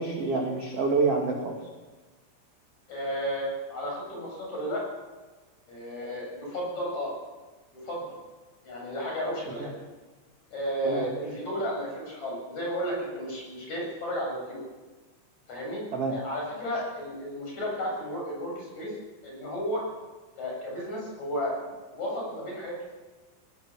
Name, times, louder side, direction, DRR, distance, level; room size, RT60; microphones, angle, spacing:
voice 1, 0.0-1.5 9.6-9.7 10.8-11.0 15.9-16.1, right 4 dB, 45° right, 0 dB, 2.3 m, -27 dB
voice 2, 2.9-4.9 5.7-7.1 7.8-8.2 8.6-9.7 10.5-14.6 15.5-15.8 16.1-18.9 19.2-19.8 20.4-22.9, equal, 35° left, -2 dB, 8.8 m, -33 dB
19.0 x 19.0 x 7.7 m, 1.3 s
omnidirectional pair, 6.0 m